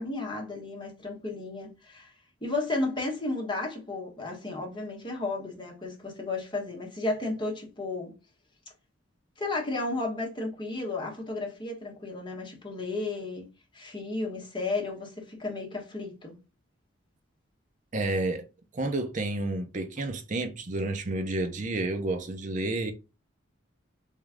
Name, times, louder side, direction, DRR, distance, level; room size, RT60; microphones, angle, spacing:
voice 1, 0.0-2.1 2.4-8.1 9.4-13.5 13.7-16.4, left 2 dB, 25° left, 1.2 m, -33 dB
voice 2, 17.9-18.4 18.7-22.9, right 2 dB, 40° right, 0.6 m, -30 dB
3.6 x 3.1 x 3.5 m
head